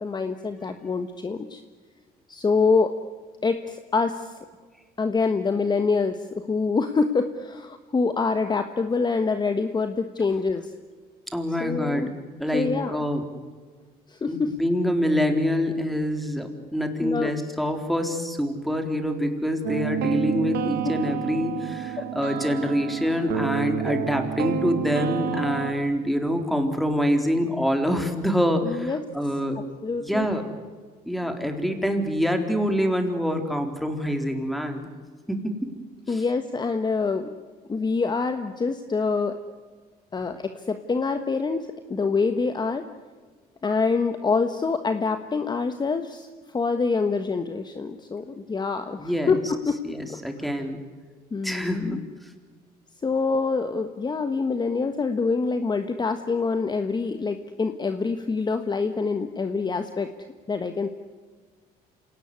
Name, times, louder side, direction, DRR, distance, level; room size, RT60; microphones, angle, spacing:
voice 1, 0.0-1.6 2.3-2.9 3.4-4.4 5.0-10.7 11.6-12.1 12.5-13.0 14.1-14.6 17.0-17.3 20.8-20.9 22.0-22.1 28.6-29.0 29.8-30.3 36.1-37.3 37.7-39.4 40.1-42.8 43.6-46.3 46.5-49.8 50.1-50.5 51.3-52.0 53.0-60.1 60.5-60.9, left 4 dB, 25° left, 8 dB, 1.4 m, -26 dB
voice 2, 11.3-12.1 12.4-13.2 14.3-29.6 30.0-30.5 31.1-34.9 35.3-35.7 36.1-36.2 49.0-49.3 49.8-50.8 51.4-52.0, equal, ahead, 6 dB, 3.8 m, -26 dB
sound 1, 19.6-25.7, right 10 dB, 75° right, 1.8 m, -29 dB
27.0 x 18.5 x 9.7 m, 1.5 s
cardioid pair, 110°, 17 cm